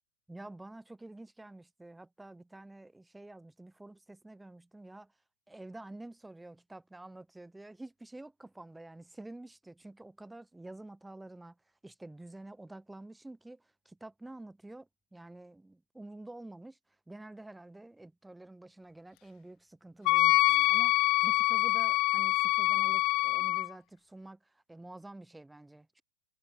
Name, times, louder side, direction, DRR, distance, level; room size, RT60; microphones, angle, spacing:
voice 1, 0.3-5.1 5.5-11.6 11.8-16.8 17.1-26.0, right 2 dB, 5° right, 2.4 m, -49 dB
Wind instrument woodwind instrument, 20.1-23.7, left 21 dB, 40° left, 0.4 m, -25 dB
figure-of-eight pair, 90°, 0 cm